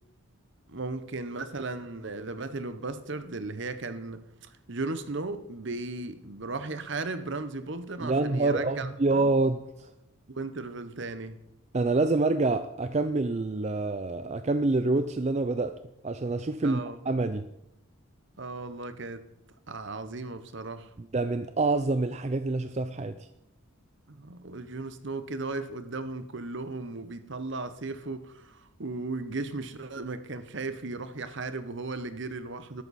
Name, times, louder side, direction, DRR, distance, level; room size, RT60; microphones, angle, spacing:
voice 1, 0.7-9.3 10.3-11.4 16.6-17.0 18.4-19.3 19.7-20.9 24.1-32.8, right 3 dB, 55° right, 0.9 m, -36 dB
voice 2, 8.0-9.9 11.7-15.8 16.0-17.5 21.0-23.3, right 3 dB, 30° right, 0.4 m, -27 dB
13.0 x 12.0 x 4.2 m
head